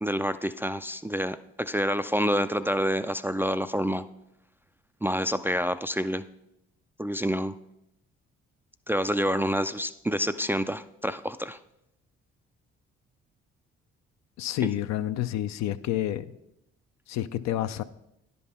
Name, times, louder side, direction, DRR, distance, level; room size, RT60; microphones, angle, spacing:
voice 1, 0.0-4.0 5.0-6.2 7.0-7.5 8.9-11.6 14.6-14.7, equal, 10° right, 10 dB, 0.3 m, -28 dB
voice 2, 14.4-16.3 17.1-17.8, left 12 dB, 65° left, 12 dB, 0.5 m, -29 dB
10.5 x 5.5 x 4.2 m, 0.82 s
hypercardioid pair, 55°, 29 cm